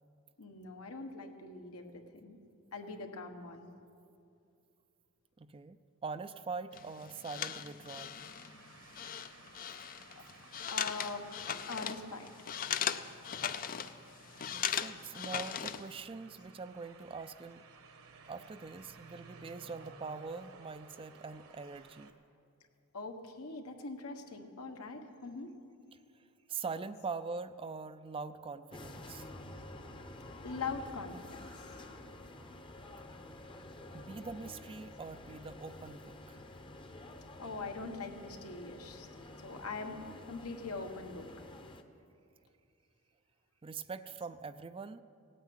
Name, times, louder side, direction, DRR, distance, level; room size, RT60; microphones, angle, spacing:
voice 1, 0.4-2.4 2.7-3.7 10.1-10.2 10.7-11.3 11.7-12.3 22.9-25.5 30.4-31.8 37.4-39.1 39.4-40.0 40.3-41.2, left 4 dB, 75° left, 4 dB, 1.4 m, -42 dB
voice 2, 5.4-8.2 14.5-17.6 18.3-22.1 25.9-29.3 33.9-36.4 37.0-37.2 43.6-45.0, right 4 dB, 25° right, 12 dB, 0.4 m, -43 dB
sound 1, 6.7-16.0, left 8 dB, 40° left, 0.5 m, -39 dB
sound 2, 8.2-22.1, right 4 dB, 65° right, 1.2 m, -57 dB
sound 3, 28.7-41.8, left 1 dB, 20° left, 0.8 m, -50 dB
17.0 x 9.3 x 9.0 m, 2.5 s
head